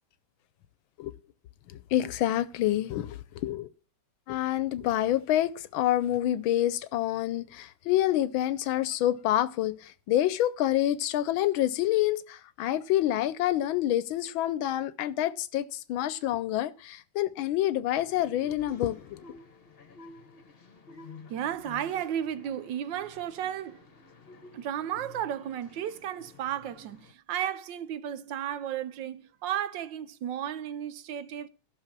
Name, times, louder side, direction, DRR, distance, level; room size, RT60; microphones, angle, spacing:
voice 1, 1.7-3.7 4.3-19.2, left 13 dB, 90° left, 1.5 m, -27 dB
sound 1, 17.9-27.1, left 4 dB, 35° left, 1.1 m, -51 dB
voice 2, 21.3-23.8 24.5-31.5, right 10 dB, 75° right, 1.3 m, -34 dB
14.0 x 6.3 x 6.0 m
omnidirectional pair, 2.1 m